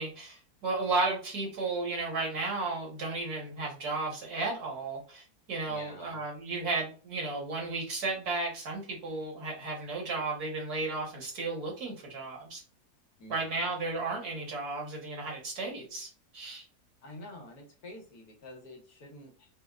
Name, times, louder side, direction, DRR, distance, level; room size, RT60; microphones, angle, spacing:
voice 1, 0.0-12.6 13.3-16.7, right 3 dB, 75° right, -1 dB, 1.8 m, -34 dB
voice 2, 5.7-6.2 13.2-13.7 17.0-19.5, left 1 dB, 75° left, 2 dB, 1.5 m, -48 dB
5.0 x 2.1 x 2.4 m, 0.38 s
omnidirectional pair, 1.7 m